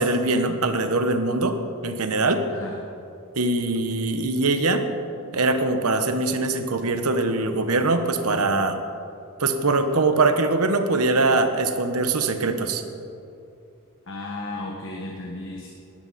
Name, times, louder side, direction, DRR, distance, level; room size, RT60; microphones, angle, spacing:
voice 1, 0.0-2.4 3.3-4.9 5.3-8.8 9.4-12.8, right 3 dB, 80° right, 8 dB, 1.1 m, -22 dB
voice 2, 14.1-15.7, left 2 dB, 60° left, -1 dB, 1.5 m, -34 dB
17.5 x 12.0 x 4.2 m, 2.7 s
head